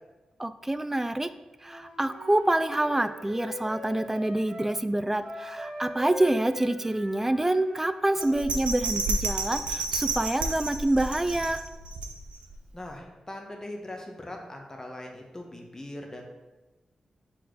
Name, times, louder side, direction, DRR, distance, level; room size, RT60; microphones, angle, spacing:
voice 1, 0.4-1.3 1.6-11.6, right 1 dB, 15° right, 12 dB, 0.4 m, -27 dB
Wind instrument woodwind instrument, 1.6-4.7 5.2-8.4, equal, 55° right, 1.6 m, -41 dB
Bell, 8.2-12.5 13.0-13.1, right 3 dB, 80° right, 0.7 m, -31 dB
voice 2, 12.7-16.3, left 1 dB, 25° left, 1 dB, 1.2 m, -40 dB
4.6 x 4.5 x 4.7 m, 1.1 s
cardioid pair, 55°, 2 cm